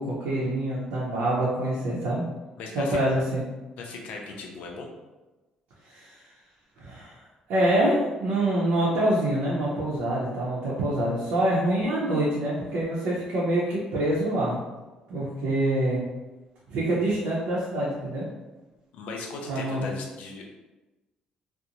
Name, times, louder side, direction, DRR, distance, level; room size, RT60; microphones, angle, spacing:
voice 1, 0.0-2.2 2.7-3.4 5.9-6.2 6.8-7.2 7.5-14.6 15.1-16.0 16.7-18.3 19.5-19.9, right 1 dB, 85° right, -7 dB, 0.6 m, -26 dB
voice 2, 2.6-3.0 3.8-4.9 18.9-20.4, left 3 dB, 75° left, 1 dB, 0.5 m, -37 dB
2.5 x 2.0 x 2.8 m, 1.1 s
cardioid pair, 115°, 2 cm